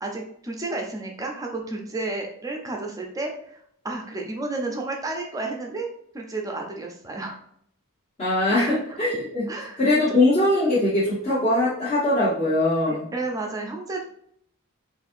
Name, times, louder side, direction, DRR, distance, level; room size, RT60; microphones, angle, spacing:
voice 1, 0.0-5.9 6.1-7.4 8.5-9.0 9.5-9.8 12.9-14.0, right 2 dB, 15° right, 1 dB, 0.4 m, -31 dB
voice 2, 8.2-9.5 9.8-13.1, left 1 dB, 30° left, -9 dB, 0.9 m, -21 dB
4.0 x 2.5 x 2.5 m, 0.69 s
head